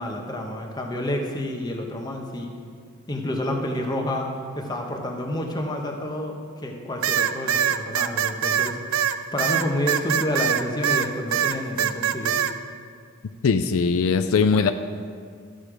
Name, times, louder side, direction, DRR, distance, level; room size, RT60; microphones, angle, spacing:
voice 1, 0.0-2.5 3.1-4.3 4.5-8.8 9.3-12.4, left 1 dB, 20° left, 1 dB, 1.0 m, -29 dB
sound 1, 7.0-11.1 11.3-12.5, right 9 dB, 70° right, 0.4 m, -23 dB
voice 2, 13.4-14.7, left 5 dB, 70° left, 9 dB, 0.4 m, -20 dB
13.5 x 6.4 x 5.0 m, 2.1 s
head